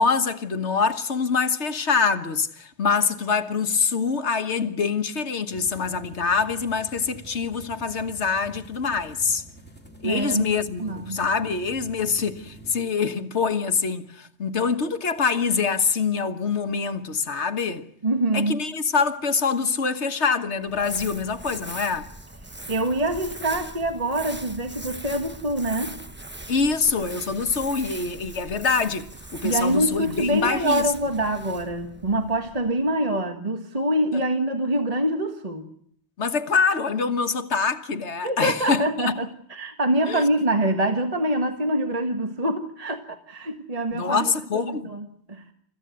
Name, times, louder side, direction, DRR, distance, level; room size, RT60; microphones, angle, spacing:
voice 1, 0.0-9.4 10.0-17.9 18.3-22.1 26.5-30.9 36.2-39.1 40.0-40.2 43.9-44.9, left 5 dB, 85° left, 1.6 m, -25 dB
sound 1, 5.5-12.7, right 2 dB, 10° left, 2.5 m, -47 dB
voice 2, 10.0-10.5 10.8-11.2 18.0-18.6 22.7-26.0 29.4-35.7 38.2-45.4, right 1 dB, 35° right, 1.6 m, -25 dB
Crumpling crinkling, 20.6-33.1, right 1 dB, 10° right, 1.0 m, -40 dB
29.5 x 15.0 x 9.3 m
omnidirectional pair, 1.1 m